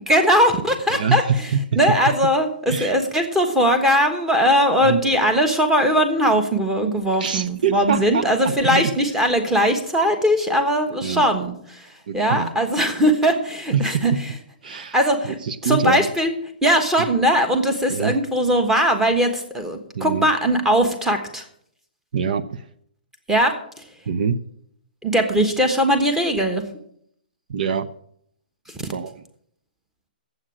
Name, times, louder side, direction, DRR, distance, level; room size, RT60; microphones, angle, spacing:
voice 1, 0.1-1.2 1.8-11.9 12.1-14.1 14.7-15.4 15.6-16.3 16.6-21.4 23.3-23.6 25.0-26.6, equal, 5° right, 6 dB, 1.2 m, -20 dB
voice 2, 0.9-1.8 2.7-2.9 4.8-5.0 7.2-8.9 11.0-11.2 12.1-12.5 13.7-14.2 14.6-15.0 15.2-16.1 17.0-17.1 17.9-18.1 19.9-20.3 22.1-22.7 24.1-24.4 27.5-27.9 28.9-29.2, right 6 dB, 60° right, 12 dB, 0.6 m, -24 dB
8.9 x 7.9 x 8.7 m, 0.68 s
hypercardioid pair, 160°, 5 cm